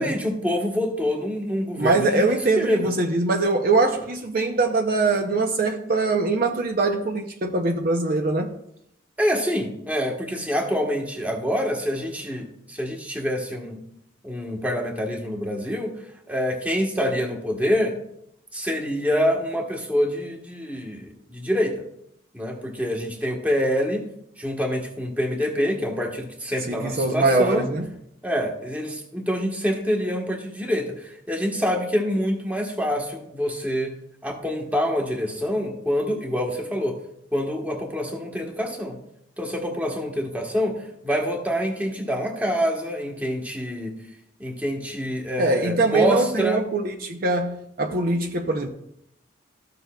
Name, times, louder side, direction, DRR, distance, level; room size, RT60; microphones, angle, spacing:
voice 1, 0.0-2.8 9.2-13.8 14.2-15.9 16.3-17.9 18.5-21.7 22.3-24.0 24.4-27.6 28.2-33.9 34.2-37.0 37.3-39.0 39.4-40.8 41.0-43.9 44.4-46.6, equal, 10° right, 1.2 m, -26 dB
voice 2, 1.8-8.5 26.7-27.9 45.4-48.7, right 3 dB, 45° right, 0.6 m, -22 dB
14.0 x 6.8 x 2.3 m
head